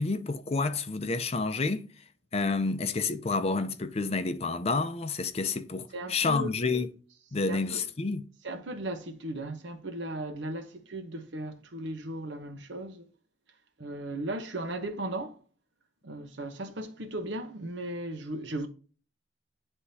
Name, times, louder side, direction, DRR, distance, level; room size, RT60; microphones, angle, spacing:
voice 1, 0.0-1.8 2.3-6.9 7.3-8.2, left 3 dB, 35° left, 0.5 m, -29 dB
voice 2, 5.9-6.7 7.5-7.8 8.4-13.0 13.8-15.4 16.0-18.7, right 1 dB, 80° right, 1.0 m, -36 dB
9.8 x 3.6 x 2.7 m
head